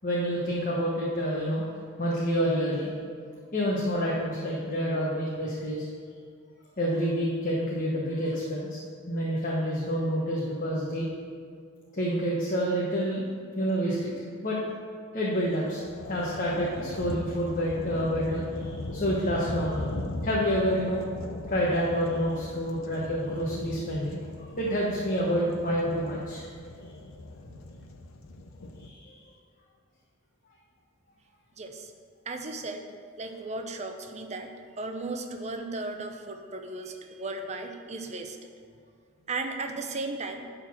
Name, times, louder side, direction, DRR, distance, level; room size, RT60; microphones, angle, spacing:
voice 1, 0.0-1.7 2.0-2.9 3.5-5.9 6.8-8.8 9.1-11.1 11.9-13.2 13.5-14.1 14.4-14.6 15.1-15.8 16.1-19.9 20.2-21.0 21.5-26.4 28.8-29.1, equal, 40° left, -5 dB, 1.1 m, -28 dB
sound 1, 15.4-28.9, left 2 dB, 80° left, 0.7 m, -39 dB
voice 2, 31.6-31.9 32.3-32.8 33.2-38.5 39.3-40.5, right 2 dB, 35° right, 5 dB, 0.7 m, -36 dB
10.5 x 3.9 x 6.2 m, 2.2 s
head